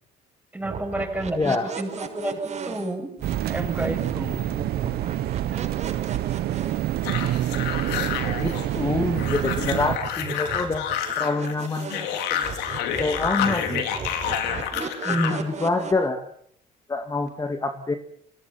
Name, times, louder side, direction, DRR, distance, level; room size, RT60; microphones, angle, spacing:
voice 1, 0.5-3.1 3.5-4.4 14.7-15.5, right 1 dB, 10° right, 5 dB, 7.3 m, -30 dB
sound 1, 0.6-8.9 9.2-12.1 12.4-15.9, right 6 dB, 40° right, 6.3 m, -36 dB
voice 2, 1.3-1.7 8.2-10.8 11.2-12.4 13.0-13.9 15.1-16.3 16.9-18.0, left 3 dB, 20° left, 6 dB, 2.2 m, -26 dB
sound 2, 3.2-10.0, right 14 dB, 70° right, 1.0 m, -27 dB
sound 3, 7.0-15.4, left 9 dB, 90° left, 4.5 m, -29 dB
30.0 x 25.5 x 5.9 m, 0.65 s
cardioid pair, 110°, 17 cm